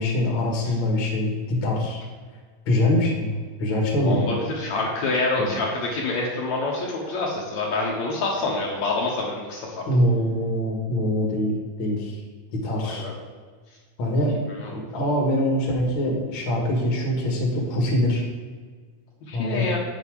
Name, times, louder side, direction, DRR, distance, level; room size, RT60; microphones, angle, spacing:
voice 1, 0.0-2.0 2.7-4.4 5.4-5.5 9.9-12.2 12.6-13.1 14.0-14.4 14.7-18.3 19.3-19.7, left 1 dB, 45° left, -1 dB, 2.2 m, -24 dB
voice 2, 4.0-9.8 12.7-13.1 14.5-14.7 19.3-19.8, left 2 dB, 65° left, -3 dB, 2.4 m, -27 dB
8.3 x 7.1 x 4.8 m, 1.5 s
omnidirectional pair, 3.6 m